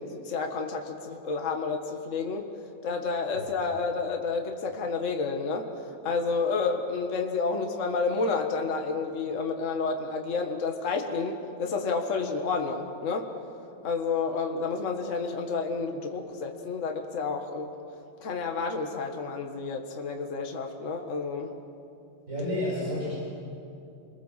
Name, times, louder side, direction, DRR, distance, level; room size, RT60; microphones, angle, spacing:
voice 1, 0.1-2.5 2.8-5.7 6.0-13.3 13.8-17.7 18.2-21.5, left 4 dB, 40° left, 3 dB, 1.9 m, -30 dB
voice 2, 22.3-23.1, left 1 dB, 40° right, -8 dB, 7.3 m, -29 dB
29.0 x 22.0 x 7.5 m, 2.6 s
omnidirectional pair, 2.2 m